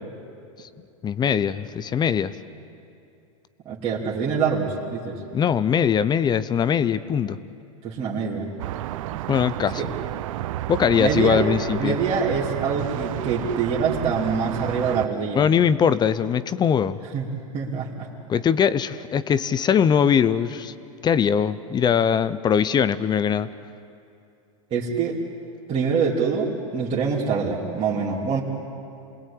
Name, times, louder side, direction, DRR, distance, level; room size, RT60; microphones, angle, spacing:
voice 1, 1.0-2.3 5.3-7.4 9.1-9.8 10.7-12.0 15.3-17.0 18.3-20.7 21.0-23.5, left 8 dB, 25° left, 15 dB, 0.8 m, -21 dB
voice 2, 3.6-5.2 7.8-8.5 9.7-9.9 11.0-11.4 11.8-15.4 17.1-17.3 17.5-18.1 24.7-25.2 25.7-28.4, right 5 dB, 30° right, -6 dB, 3.1 m, -25 dB
sound 1, 8.6-15.1, right 15 dB, 65° right, 0.7 m, -31 dB
28.0 x 20.5 x 8.7 m, 2.7 s
hypercardioid pair, 115°, 18 cm